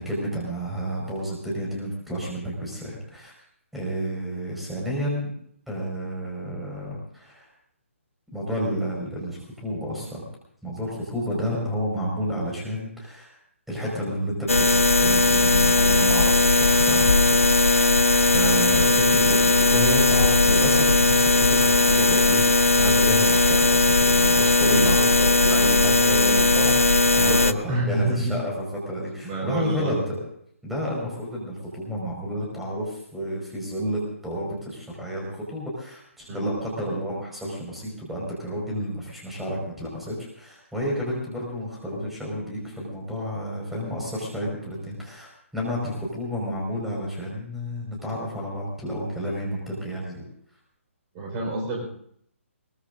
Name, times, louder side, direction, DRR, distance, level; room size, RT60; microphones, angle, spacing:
voice 1, 0.0-3.3 3.7-5.3 5.7-7.5 8.3-10.2 10.6-13.4 13.7-17.8 18.3-30.2 30.6-50.2, equal, ahead, -3 dB, 5.2 m, -31 dB
sound 1, 14.5-27.5, left 2 dB, 85° left, 0.7 m, -18 dB
voice 2, 27.1-28.4 29.2-30.1 36.3-36.5 51.1-51.9, right 1 dB, 25° right, 0 dB, 4.6 m, -27 dB
22.0 x 21.5 x 2.7 m, 0.68 s
figure-of-eight pair, 135°, 7 cm